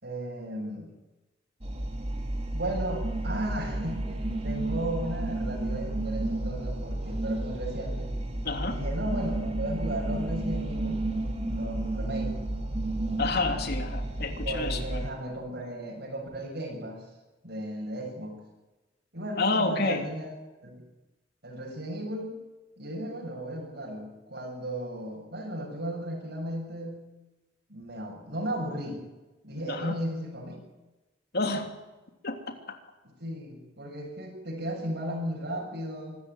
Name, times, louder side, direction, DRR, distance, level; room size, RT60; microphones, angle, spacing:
voice 1, 0.0-0.9 2.5-8.1 8.7-11.1 11.5-12.3 14.4-17.1 17.4-18.4 19.1-20.3 20.6-20.8 21.4-22.4 22.8-27.1 27.7-29.0 29.4-30.6 33.2-36.2, right 1 dB, 65° right, -2 dB, 6.9 m, -35 dB
sound 1, 1.6-15.1, right 1 dB, 35° right, 3.3 m, -32 dB
voice 2, 8.4-8.8 13.2-15.0 19.4-20.1 29.7-30.0 31.3-31.8 32.2-32.4, left 3 dB, 60° left, 4 dB, 3.2 m, -29 dB
25.0 x 14.0 x 9.7 m, 1.1 s
head